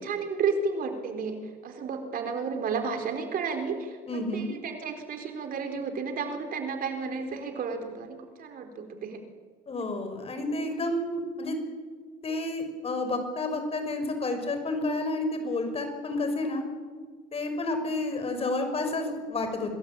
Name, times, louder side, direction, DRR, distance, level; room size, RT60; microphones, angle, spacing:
voice 1, 0.0-9.2, right 5 dB, 60° right, 5 dB, 4.2 m, -32 dB
voice 2, 4.1-4.5 9.7-11.6 12.2-16.6 17.3-19.7, left 2 dB, 35° left, 7 dB, 5.8 m, -30 dB
26.0 x 21.0 x 8.7 m, 1.5 s
cardioid pair, 110°, 17 cm